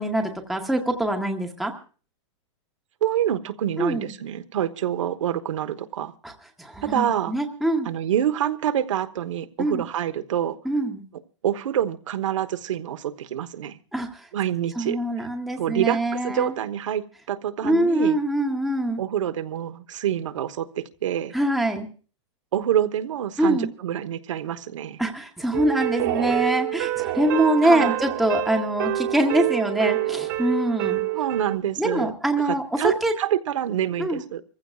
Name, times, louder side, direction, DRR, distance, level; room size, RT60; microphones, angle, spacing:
voice 1, 0.0-1.7 3.8-4.1 6.2-6.3 6.6-7.9 9.6-9.8 10.6-11.0 13.9-14.3 14.8-16.5 17.6-19.0 21.3-21.9 23.4-23.7 25.0-31.0 31.8-33.1 34.0-34.2, right 1 dB, ahead, 2 dB, 0.8 m, -24 dB
voice 2, 3.0-6.1 6.8-7.3 7.8-10.6 11.4-13.8 14.3-15.0 15.6-18.2 19.0-21.3 22.5-25.0 27.6-28.0 31.1-32.1 32.4-34.4, right 10 dB, 80° right, 9 dB, 1.2 m, -26 dB
sound 1, 25.5-31.6, right 14 dB, 40° right, 1.2 m, -27 dB
26.5 x 15.0 x 2.4 m, 0.38 s
supercardioid pair, 175°, 16 cm